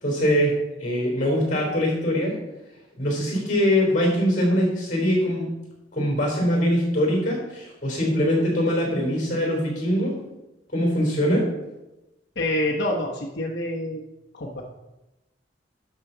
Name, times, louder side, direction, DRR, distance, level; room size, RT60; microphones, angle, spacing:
voice 1, 0.0-2.4 3.0-5.5 5.9-10.2 10.7-11.5, equal, 45° left, 0 dB, 3.7 m, -22 dB
voice 2, 12.4-14.0 14.3-14.6, left 1 dB, 60° left, -4 dB, 1.0 m, -26 dB
12.0 x 5.8 x 4.0 m, 0.99 s
head